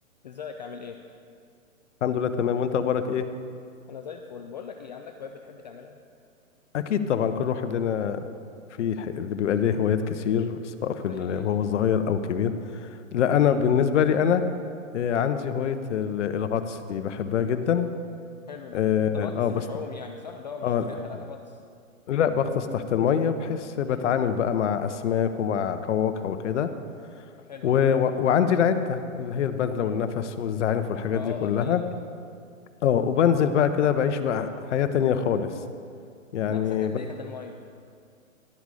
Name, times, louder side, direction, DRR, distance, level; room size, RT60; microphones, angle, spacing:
voice 1, 0.2-1.0 3.9-6.0 11.0-11.5 13.4-13.6 18.5-18.8 19.1-21.6 23.9-24.0 27.3-27.8 29.8-30.0 31.1-31.8 33.1-33.3 36.5-37.6, left 6 dB, 35° left, 5 dB, 0.4 m, -40 dB
voice 2, 2.0-3.3 6.7-8.3 8.8-14.4 14.9-17.9 18.7-19.5 20.6-20.8 22.1-26.7 27.6-31.8 32.8-35.5 36.3-36.9, left 8 dB, 60° left, 10 dB, 0.9 m, -24 dB
12.0 x 8.1 x 4.9 m, 2.3 s
hypercardioid pair, 145°, 41 cm